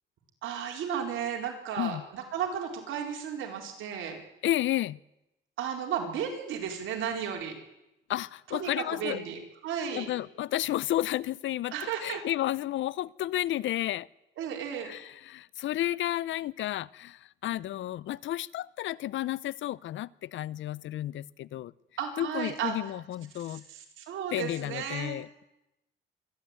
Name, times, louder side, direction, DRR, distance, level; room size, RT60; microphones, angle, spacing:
voice 1, 0.4-4.2 5.6-7.6 8.5-10.1 11.7-12.2 14.4-14.9 22.0-22.8 23.5-25.2, right 8 dB, 85° right, 2 dB, 4.5 m, -34 dB
voice 2, 4.4-5.0 8.1-9.2 9.9-14.1 14.8-21.7 22.2-23.6 24.3-25.4, left 13 dB, 70° left, 22 dB, 0.6 m, -32 dB
25.0 x 12.0 x 9.0 m, 0.94 s
cardioid pair, 90°, 20 cm